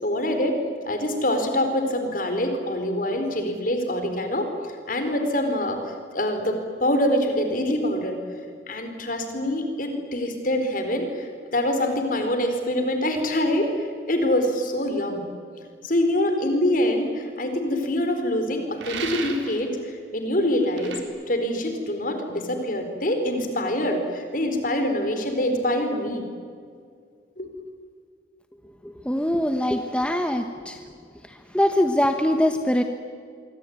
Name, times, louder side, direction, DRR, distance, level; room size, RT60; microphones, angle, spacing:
voice 1, 0.0-4.5 4.9-5.8 6.1-8.2 8.7-15.3 15.8-26.2 27.4-27.5, left 1 dB, 45° left, 6 dB, 4.5 m, -25 dB
sound 1, 18.8-19.6 20.8-21.0, right 6 dB, 75° right, 3.9 m, -33 dB
voice 2, 29.0-30.8 31.5-32.8, left 1 dB, 5° left, 5 dB, 1.1 m, -22 dB
25.5 x 24.5 x 9.5 m, 2.2 s
head